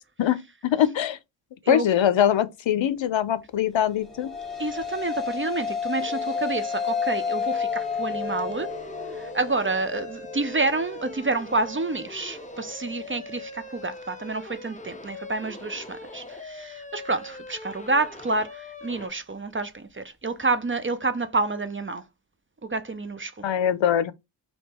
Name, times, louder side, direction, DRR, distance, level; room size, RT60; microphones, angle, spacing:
voice 1, 0.2-1.2 1.7-4.3 23.4-24.1, left 10 dB, 80° left, 0.6 m, -23 dB
sound 1, 3.9-12.5, left 6 dB, ahead, 1.2 m, -32 dB
voice 2, 4.6-8.7 9.1-22.0 22.6-23.4, right 3 dB, 30° right, 0.5 m, -29 dB
sound 2, 6.0-19.1, left 1 dB, 15° left, 0.6 m, -41 dB
3.5 x 2.8 x 4.1 m
wide cardioid pair, 80°, 45 cm